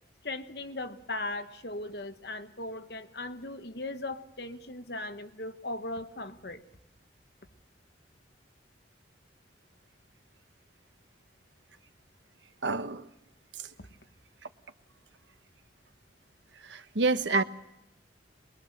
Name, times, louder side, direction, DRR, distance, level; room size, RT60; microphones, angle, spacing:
voice 1, 0.2-6.6 17.3-17.4, left 2 dB, 60° left, 1.4 m, -37 dB
voice 2, 12.6-13.1 13.5-13.7 16.5-17.4, right 4 dB, 75° right, 1.2 m, -29 dB
24.0 x 22.0 x 6.6 m
head